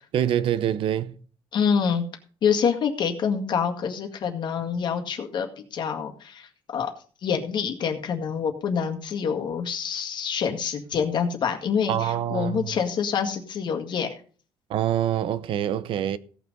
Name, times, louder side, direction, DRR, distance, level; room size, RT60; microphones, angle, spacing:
voice 1, 0.1-1.2 11.9-12.7 14.7-16.2, right 10 dB, 60° right, 0.8 m, -25 dB
voice 2, 1.5-2.0 2.4-6.9 7.2-14.1, left 6 dB, 50° left, 1.9 m, -26 dB
16.5 x 6.1 x 5.3 m
cardioid pair, 145°, 10 cm